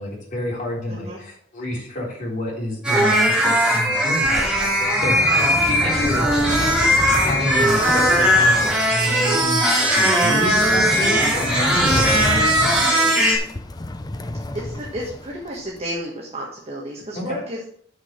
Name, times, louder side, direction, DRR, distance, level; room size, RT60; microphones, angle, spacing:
voice 1, 0.0-5.2 5.6-6.3 7.2-9.7 9.9-13.1 17.3-17.4, left 1 dB, 45° left, -3 dB, 3.5 m, -28 dB
voice 2, 0.9-1.2 5.1-5.5 6.1-6.6 14.5-17.6, equal, 35° right, -3 dB, 1.6 m, -32 dB
sound 1, 2.8-13.4, equal, 5° right, 2.6 m, -18 dB
sound 2, 4.1-15.8, left 1 dB, 20° left, 0.6 m, -30 dB
6.3 x 6.2 x 6.6 m, 0.63 s
head